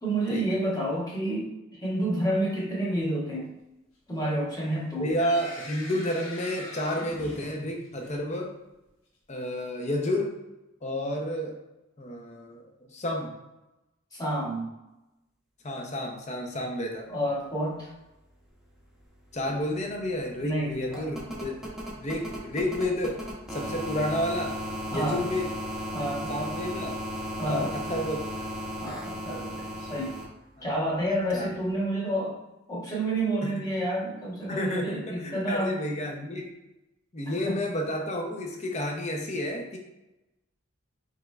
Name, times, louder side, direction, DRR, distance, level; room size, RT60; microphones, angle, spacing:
voice 1, 0.0-1.5 1.8-3.5 4.1-5.2 14.1-14.7 17.1-17.9 20.4-21.1 24.9-25.2 25.9-26.3 27.4-27.7 28.8-30.2 30.6-32.4 32.7-35.8 37.4-37.6, right 1 dB, 20° left, -5 dB, 1.1 m, -29 dB
sound 1, 4.7-8.3, left 2 dB, 90° left, 1.2 m, -42 dB
voice 2, 5.0-8.5 9.3-10.4 10.8-11.6 12.0-13.3 15.6-17.1 19.3-23.2 23.5-24.6 24.9-25.5 26.3-27.0 27.4-28.2 30.6-30.7 31.3-31.5 33.4-33.6 34.5-36.5 37.1-39.8, left 1 dB, 35° left, 1 dB, 0.7 m, -31 dB
sound 2, 19.0-19.1 19.3-30.2 31.7-31.8, equal, 5° right, 0.8 m, -36 dB
5.6 x 3.2 x 2.4 m, 0.97 s
head